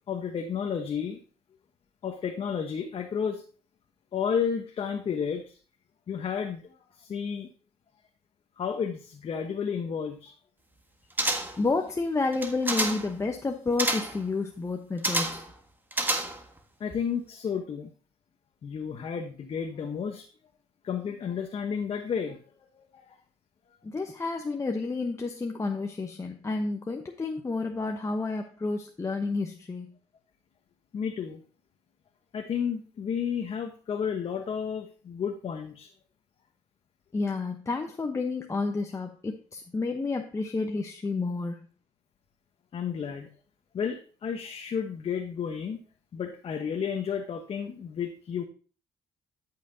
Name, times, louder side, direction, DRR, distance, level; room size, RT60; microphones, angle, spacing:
voice 1, 0.1-1.2 2.0-3.4 4.1-5.6 6.1-7.5 8.6-10.3 16.8-17.9 18.6-20.2 20.8-22.4 22.8-23.2 30.9-31.4 32.3-35.9 42.7-43.3 43.7-45.8 46.1-48.4, left 7 dB, 55° left, 3 dB, 1.1 m, -32 dB
sound 1, 11.2-11.7 12.3-13.1 13.8-14.2 15.0-15.5 15.9-16.6 16.9-17.0, right 1 dB, 15° right, 1.5 m, -29 dB
voice 2, 11.6-15.5 23.8-29.9 37.1-41.7, left 3 dB, 25° left, 3 dB, 1.0 m, -30 dB
13.0 x 5.8 x 2.8 m, 0.39 s
supercardioid pair, 75°, 12 cm